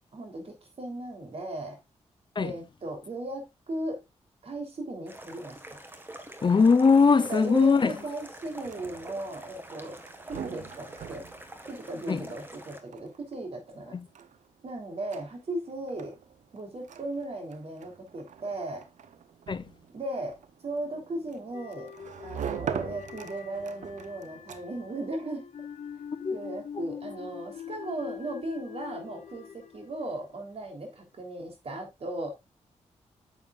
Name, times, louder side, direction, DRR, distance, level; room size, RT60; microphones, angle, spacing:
voice 1, 0.1-1.8 2.4-4.0 4.4-5.8 7.2-10.0 10.3-11.2 11.7-14.0 14.6-16.2 16.5-18.9 19.9-20.4 20.6-21.9 22.2-25.5 26.3-32.3, right 1 dB, 55° right, 3.4 m, -37 dB
sound 1, 5.1-12.8, right 1 dB, 15° right, 1.5 m, -46 dB
voice 2, 6.4-7.9 12.1-12.2 13.9-14.0 19.5-19.7 26.1-26.4, left 5 dB, 40° left, 0.7 m, -21 dB
sound 2, 8.4-25.0, right 8 dB, 80° right, 0.8 m, -43 dB
sound 3, 21.5-30.7, left 8 dB, 70° left, 1.1 m, -44 dB
9.1 x 7.1 x 2.4 m
cardioid pair, 70°, 12 cm